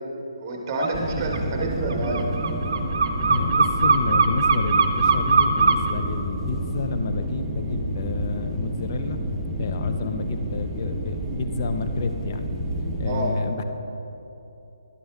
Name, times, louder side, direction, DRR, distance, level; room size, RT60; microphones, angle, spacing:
voice 1, 0.4-2.3 13.0-13.3, right 2 dB, 25° right, 1 dB, 1.1 m, -28 dB
sound 1, 0.8-0.9 1.2-5.9, right 5 dB, 60° right, 0.6 m, -20 dB
sound 2, 0.9-13.1, right 1 dB, 10° right, 0.7 m, -30 dB
voice 2, 3.2-9.2 9.6-12.5 13.0-13.6, left 4 dB, 45° left, 8 dB, 0.4 m, -29 dB
11.5 x 5.3 x 3.5 m, 3.0 s
hypercardioid pair, 160°, 3 cm